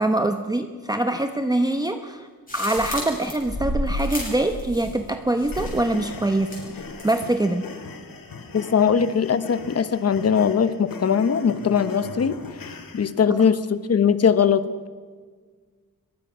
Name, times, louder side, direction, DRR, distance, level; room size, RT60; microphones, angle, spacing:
voice 1, 0.0-2.3 2.5-6.5 7.0-7.6, right 1 dB, 10° right, 6 dB, 0.9 m, -24 dB
sound 1, 2.5-5.1 5.4-5.9 6.4-7.3, left 1 dB, 25° left, 7.5 m, -31 dB
sound 2, 5.5-13.1, left 4 dB, 70° left, 2.8 m, -39 dB
voice 2, 8.5-12.4 12.9-14.6, left 7 dB, 40° left, 13 dB, 1.0 m, -20 dB
22.5 x 22.0 x 6.2 m, 1.5 s
wide cardioid pair, 140°, 36 cm